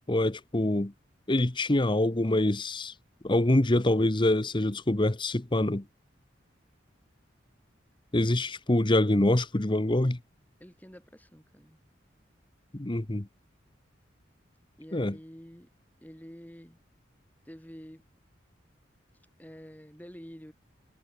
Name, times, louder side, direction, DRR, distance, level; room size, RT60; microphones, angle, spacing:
voice 1, 0.1-0.9 1.3-2.9 3.2-5.8 8.1-10.2 12.7-13.3 14.9-15.2, left 1 dB, 25° left, 1.0 m, -25 dB
voice 2, 10.6-11.8 14.8-15.7 16.0-16.8 17.4-18.0 19.1-20.5, equal, 10° left, 4.7 m, -48 dB
head